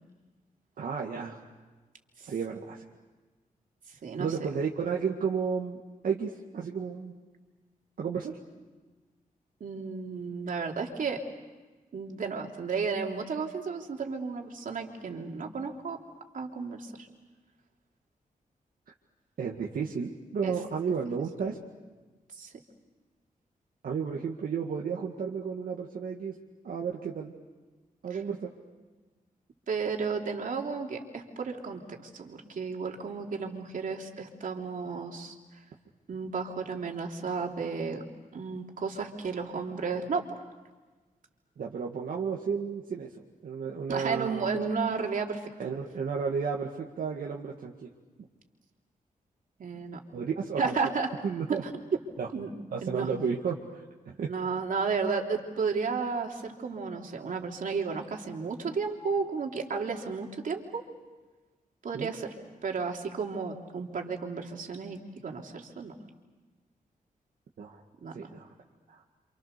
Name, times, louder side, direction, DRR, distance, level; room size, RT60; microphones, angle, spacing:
voice 1, 0.8-1.4 2.2-2.8 4.2-7.1 8.0-8.4 19.4-21.6 23.8-26.3 26.6-27.4 28.0-28.5 41.6-43.1 43.4-44.6 45.6-47.9 50.1-50.7 51.2-51.6 52.2-52.3 52.7-54.3 61.9-62.1 67.6-67.8 68.1-68.5, right 6 dB, 85° right, -2 dB, 2.0 m, -32 dB
voice 2, 4.0-4.5 9.6-11.2 11.9-16.0 16.3-17.1 20.4-20.5 22.4-22.5 28.1-28.2 29.7-35.4 36.1-38.0 38.3-40.2 43.9-45.5 49.6-50.0 50.6-51.1 51.5-51.7 52.3-52.5 52.8-53.1 54.3-60.8 61.8-62.3 62.6-65.9 68.0-68.3, right 5 dB, 65° right, 1 dB, 3.3 m, -33 dB
29.0 x 27.5 x 6.8 m, 1.3 s
wide cardioid pair, 130°, 15 cm